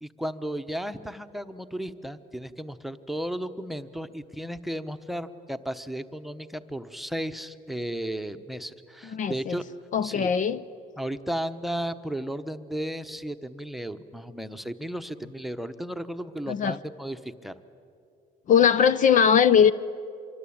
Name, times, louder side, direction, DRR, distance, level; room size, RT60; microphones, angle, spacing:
voice 1, 0.0-9.6 10.0-10.3 11.0-17.5, equal, ahead, 0.9 m, -34 dB
voice 2, 9.0-9.6 9.9-10.6 16.5-16.8 18.5-19.7, left 7 dB, 50° left, 0.6 m, -20 dB
25.5 x 23.5 x 8.7 m
cardioid pair, 110°, 17 cm